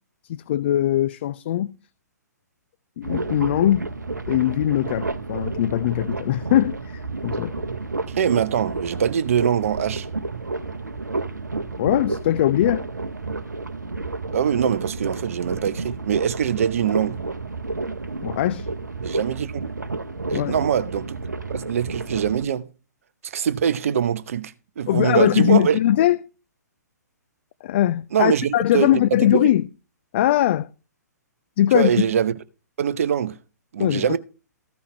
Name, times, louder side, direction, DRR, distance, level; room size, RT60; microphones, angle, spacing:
voice 1, 0.3-1.7 3.0-3.9 4.3-7.7 11.8-12.8 18.2-18.7 20.3-20.6 24.9-26.2 27.6-29.6 30.1-30.7 31.6-31.9 33.8-34.2, left 12 dB, 40° left, 0.4 m, -21 dB
sound 1, 3.0-22.4, right 3 dB, 80° right, 0.9 m, -31 dB
voice 2, 8.1-10.1 14.3-17.2 19.0-19.6 20.3-21.2 21.5-22.7 23.2-25.8 28.1-28.9 29.2-29.5 31.7-32.3 32.8-33.4 33.7-34.2, right 8 dB, 50° right, 0.8 m, -23 dB
14.5 x 5.6 x 4.3 m
figure-of-eight pair, 120°, 10 cm